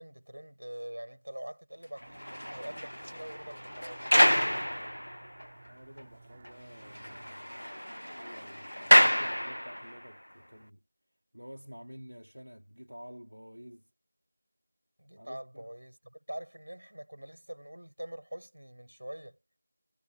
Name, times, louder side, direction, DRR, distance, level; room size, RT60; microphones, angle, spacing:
voice 1, 0.0-4.0 15.0-19.4, right 1 dB, 70° right, 6.5 m, -44 dB
sound 1, 2.0-5.5 6.0-6.1 6.4-6.5 6.8-10.1, equal, 85° left, 0.4 m, -28 dB
sound 2, 2.0-7.3, right 4 dB, 20° right, 4.6 m, -57 dB
voice 2, 5.6-7.7 8.1-10.8 11.3-13.9 15.2-15.7, equal, 85° right, 3.6 m, -50 dB
figure-of-eight pair, 170°, 0 cm